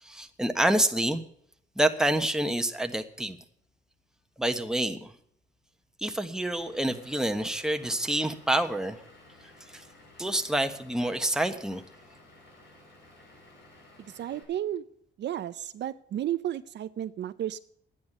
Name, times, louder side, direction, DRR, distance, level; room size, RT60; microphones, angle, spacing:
voice 1, 0.0-1.2 1.8-3.4 4.4-5.1 6.0-9.0 9.7-9.8 10.2-11.8, right 1 dB, 5° right, 6 dB, 1.3 m, -27 dB
Vehicle / Engine, 6.4-14.4, left 2 dB, 65° left, 5.6 m, -54 dB
voice 2, 14.0-14.8 15.2-17.6, right 11 dB, 60° right, 12 dB, 0.6 m, -33 dB
12.0 x 9.5 x 8.0 m, 0.67 s
cardioid pair, 90°, 20 cm